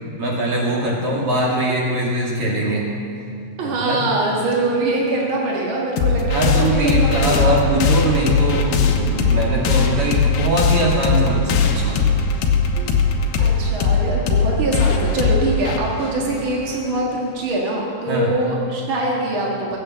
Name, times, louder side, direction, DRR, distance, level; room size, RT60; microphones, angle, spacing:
voice 1, 0.2-2.8 3.6-4.0 6.3-12.0 15.9-16.0 18.1-18.3, right 1 dB, 40° right, -3 dB, 2.8 m, -21 dB
voice 2, 3.6-7.5 12.7-19.8, right 2 dB, 60° right, -3 dB, 1.3 m, -23 dB
sound 1, 6.0-17.1, left 5 dB, 70° left, 2.6 m, -19 dB
16.5 x 8.8 x 7.7 m, 2.5 s
omnidirectional pair, 5.0 m